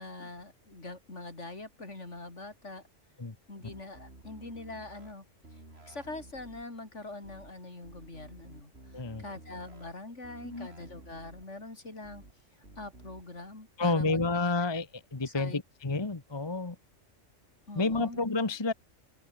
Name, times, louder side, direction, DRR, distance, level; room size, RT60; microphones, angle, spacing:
voice 1, 0.0-2.8 3.5-5.2 5.9-12.2 12.8-14.2 15.2-15.6 17.7-18.2, left 2 dB, 65° left, 4.7 m, -43 dB
sound 1, 3.6-5.1 5.4-6.6 7.2-7.5 7.8-9.9 10.2-11.4 12.0-12.3 12.6-13.2, right 2 dB, 50° right, 4.5 m, -52 dB
voice 2, 8.9-9.2 10.4-10.7 13.8-16.8 17.7-18.7, left 3 dB, 20° left, 1.2 m, -30 dB
open air
omnidirectional pair, 1.3 m